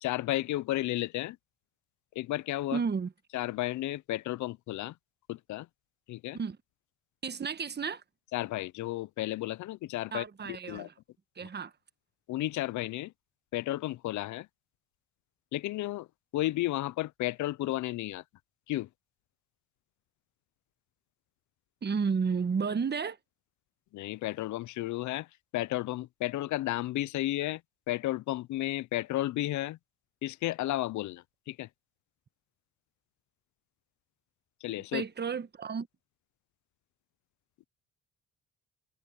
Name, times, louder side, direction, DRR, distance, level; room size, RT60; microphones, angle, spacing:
voice 1, 0.0-1.4 2.2-2.8 3.3-4.9 5.3-5.7 6.1-6.4 8.3-10.9 12.3-13.1 13.5-14.5 15.5-16.1 16.3-18.2 18.7-18.9 23.9-25.3 25.5-27.6 27.9-29.8 30.2-31.7 34.6-35.0, left 16 dB, 75° left, 0.5 m, -33 dB
voice 2, 2.7-3.1 6.3-6.6 7.2-8.0 10.1-10.9 11.4-11.7 21.8-23.2 34.9-35.9, right 5 dB, 35° right, 1.3 m, -32 dB
cardioid pair, 90°, 30 cm